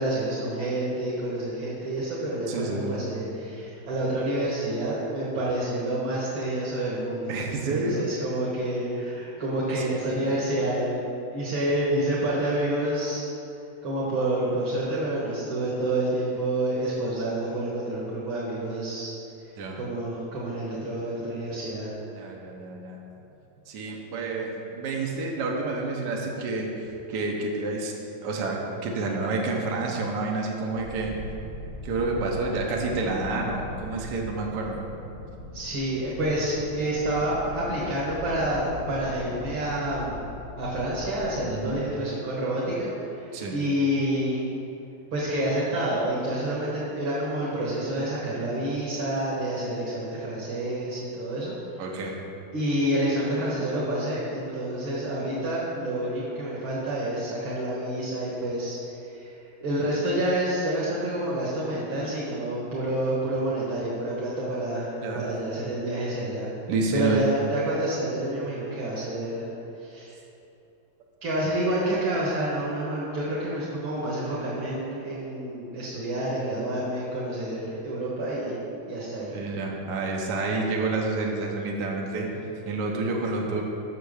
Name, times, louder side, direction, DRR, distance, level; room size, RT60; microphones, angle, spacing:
voice 1, 0.0-11.0 11.3-13.3 13.8-19.1 19.8-21.9 35.5-40.2 40.6-44.4 45.1-51.8 52.5-58.8 59.1-66.5 66.9-69.5 69.8-70.1 71.2-78.6 78.9-79.3, right 1 dB, 90° right, -7 dB, 2.2 m, -28 dB
voice 2, 2.5-3.0 7.3-8.1 9.7-10.3 19.6-19.8 22.1-23.0 23.7-27.9 28.2-28.6 28.8-31.1 31.8-34.8 41.5-41.8 43.3-43.5 51.8-52.1 65.0-65.3 66.7-67.2 79.3-82.3 82.7-83.6, right 3 dB, 60° right, -1 dB, 1.5 m, -29 dB
sound 1, 30.7-41.8, left 2 dB, 45° left, 0.9 m, -41 dB
6.9 x 6.5 x 6.5 m, 2.9 s
omnidirectional pair, 2.1 m